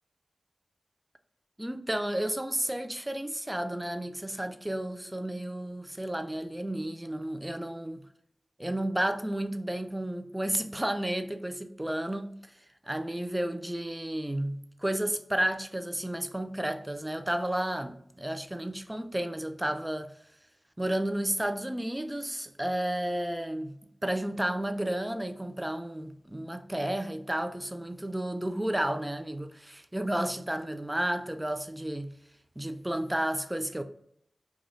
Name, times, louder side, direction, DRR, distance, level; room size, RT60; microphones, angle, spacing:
voice 1, 1.6-8.0 8.6-12.5 12.8-20.1 20.8-32.1 32.6-33.8, right 1 dB, 15° right, 0.3 m, -32 dB
3.1 x 2.3 x 2.5 m
cardioid pair, 40°, 0 cm